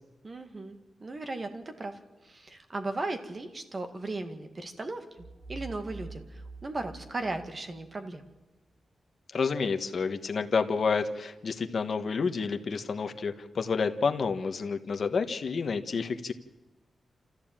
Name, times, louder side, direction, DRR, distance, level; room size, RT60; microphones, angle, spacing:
voice 1, 0.2-8.2, right 2 dB, 30° right, 7 dB, 2.0 m, -37 dB
sound 1, 5.2-8.0, right 3 dB, 50° right, 4.1 m, -45 dB
voice 2, 9.3-16.3, left 5 dB, 50° left, 7 dB, 1.3 m, -29 dB
28.0 x 14.5 x 9.0 m, 1.1 s
wide cardioid pair, 145°, 0 cm